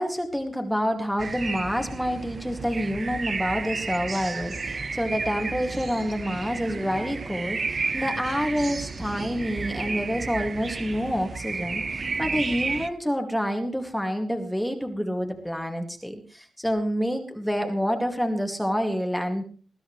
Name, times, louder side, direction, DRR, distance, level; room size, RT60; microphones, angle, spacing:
voice 1, 0.0-19.4, equal, ahead, 4 dB, 2.2 m, -28 dB
sound 1, 1.2-12.9, right 4 dB, 35° right, 1.1 m, -32 dB
21.0 x 14.0 x 3.2 m, 0.40 s
wide cardioid pair, 130°, 0 cm